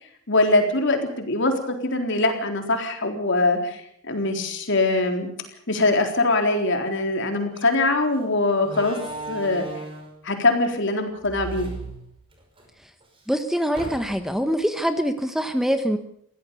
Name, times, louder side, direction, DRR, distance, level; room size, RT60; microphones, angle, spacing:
voice 1, 0.3-3.8 4.1-5.3 5.7-9.0 9.3-9.6 10.2-11.7, left 2 dB, 60° left, 5 dB, 4.0 m, -22 dB
Slam, 7.5-7.7 8.6-10.2 11.2-12.6 13.0-13.1 13.7-14.4, right 2 dB, 25° right, 5.5 m, -36 dB
voice 2, 13.3-16.0, equal, ahead, 8 dB, 1.1 m, -24 dB
23.0 x 16.5 x 7.0 m, 0.69 s
head